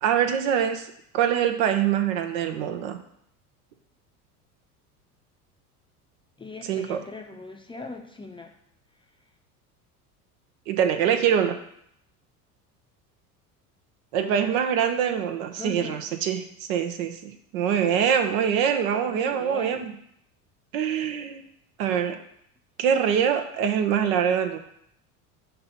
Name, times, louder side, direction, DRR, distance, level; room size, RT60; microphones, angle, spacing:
voice 1, 0.0-0.9 1.1-3.0 6.7-7.0 10.7-11.6 14.1-19.9 20.7-21.4 21.8-22.2 22.8-24.6, right 8 dB, 65° right, 7 dB, 0.8 m, -24 dB
voice 2, 6.4-8.5 11.1-11.4 14.1-14.6 15.5-16.0 19.1-19.9, left 3 dB, 10° left, 3 dB, 0.6 m, -40 dB
6.6 x 2.9 x 5.4 m, 0.71 s
hypercardioid pair, 75°, 45 cm